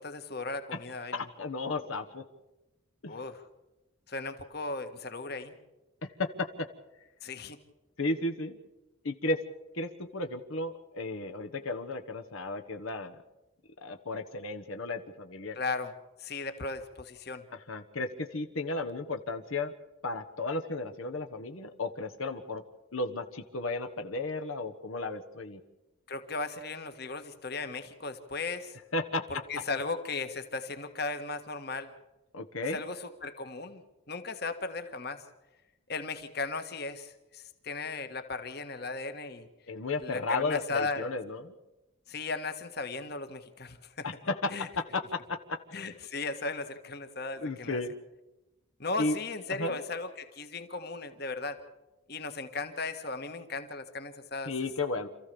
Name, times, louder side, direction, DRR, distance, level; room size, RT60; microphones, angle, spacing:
voice 1, 0.0-1.2 3.1-3.4 4.1-5.5 7.2-7.6 15.5-15.9 16.2-17.4 26.1-28.8 29.3-31.9 32.7-33.8 34.1-35.2 35.9-39.5 40.0-41.1 42.1-44.1 44.5-44.7 45.7-47.8 48.8-51.6 52.1-54.5, left 3 dB, 50° left, 9 dB, 1.6 m, -36 dB
voice 2, 1.1-2.2 3.0-3.2 6.0-6.7 8.0-8.6 9.0-9.4 9.7-13.2 13.8-15.6 17.5-19.7 20.0-22.6 22.9-25.6 28.9-29.2 32.3-32.8 39.7-41.5 44.0-45.9 47.4-47.9 49.0-49.2 49.5-49.8 54.4-55.1, left 2 dB, 85° left, 6 dB, 1.3 m, -34 dB
27.5 x 14.5 x 6.9 m, 1.0 s
head